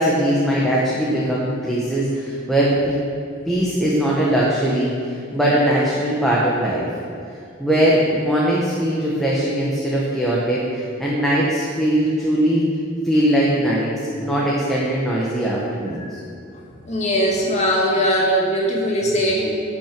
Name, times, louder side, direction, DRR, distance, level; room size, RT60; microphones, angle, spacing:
voice 1, 0.0-3.0 3.5-6.8 7.6-12.7 13.0-13.9 14.2-16.2, right 1 dB, ahead, -6 dB, 1.3 m, -20 dB
voice 2, 16.9-19.5, equal, 35° left, -3 dB, 2.1 m, -20 dB
11.0 x 6.2 x 6.1 m, 2.4 s
head